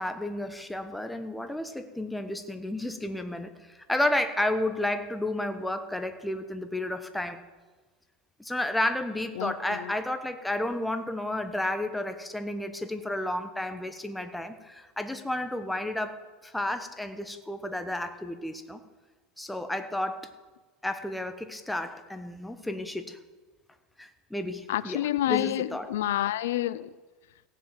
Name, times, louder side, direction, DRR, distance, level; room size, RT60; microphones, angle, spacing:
voice 1, 0.0-7.4 8.4-16.1 16.4-18.8 19.4-20.3 20.8-23.2 24.0-25.0 25.3-25.9, left 1 dB, 5° left, 8 dB, 1.0 m, -32 dB
voice 2, 9.4-9.9 24.7-26.9, left 13 dB, 85° left, 18 dB, 0.4 m, -29 dB
16.5 x 7.4 x 7.3 m, 1.3 s
supercardioid pair, 125°, 0 cm